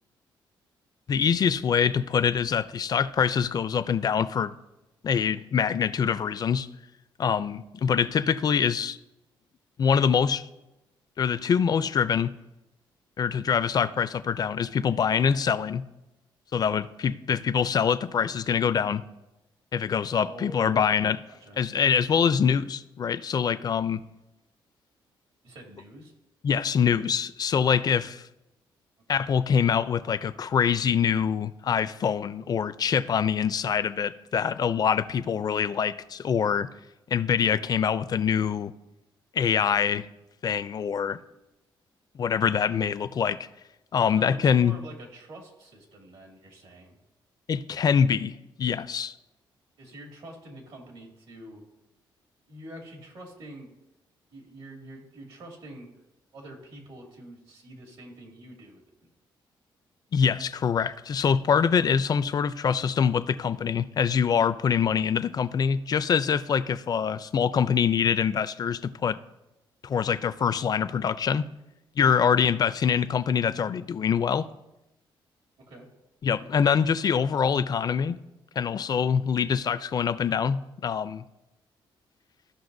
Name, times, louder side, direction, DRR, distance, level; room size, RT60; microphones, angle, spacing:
voice 1, 1.1-4.5 5.0-6.7 7.2-9.0 9.8-10.5 11.2-12.3 13.2-15.8 16.5-19.0 19.7-21.2 21.6-24.0 26.4-28.2 29.1-36.7 37.1-38.7 39.3-40.1 40.4-41.2 42.1-43.4 43.9-44.7 47.5-48.3 48.6-49.1 60.1-69.2 69.8-71.4 72.0-74.5 76.2-78.2 78.6-81.2, left 7 dB, 45° left, 0.4 m, -24 dB
voice 2, 20.1-20.9 21.3-21.9 25.4-26.1 44.1-47.0 49.8-51.6 52.5-53.7 54.3-55.9 56.3-58.8 75.6-75.9, right 1 dB, 75° right, 2.4 m, -46 dB
14.5 x 5.5 x 2.7 m
cardioid pair, 90°, 9 cm